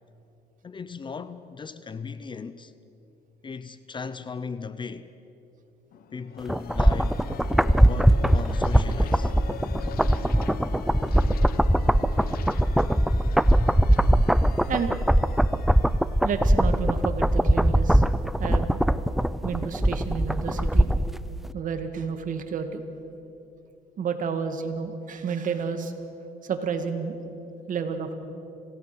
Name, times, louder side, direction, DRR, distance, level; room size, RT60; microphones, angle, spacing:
voice 1, 0.6-2.7 3.4-5.1 6.1-7.2 7.7-9.3, left 5 dB, 30° left, 0.8 m, -37 dB
sound 1, 5.9-17.4, left 8 dB, 60° left, 1.1 m, -42 dB
sound 2, 6.5-21.2 21.5-21.6, right 1 dB, ahead, 0.4 m, -21 dB
voice 2, 16.2-18.0 18.4-18.8 19.4-20.9 21.5-22.8 24.0-25.9 26.4-27.2 27.7-28.1, right 6 dB, 50° right, 2.0 m, -30 dB
26.5 x 17.5 x 6.1 m
cardioid pair, 110°, 17 cm